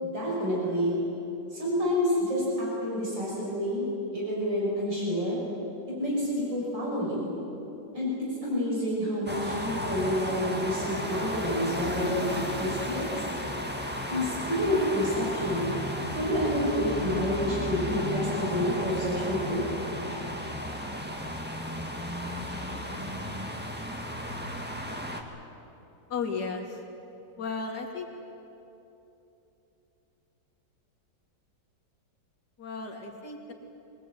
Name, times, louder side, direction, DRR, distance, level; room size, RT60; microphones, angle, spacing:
voice 1, 0.0-1.0 1.5-3.9 4.1-5.4 6.0-7.3 7.9-8.1 8.4-13.2 14.1-15.7 16.1-19.6, equal, 90° right, -5 dB, 6.8 m, -28 dB
sound 1, 9.3-25.2, equal, 5° right, 1.7 m, -34 dB
voice 2, 26.1-26.8 27.4-28.1 32.6-33.5, left 4 dB, 65° left, 1 dB, 3.0 m, -34 dB
23.5 x 19.5 x 9.2 m, 3.0 s
omnidirectional pair, 1.9 m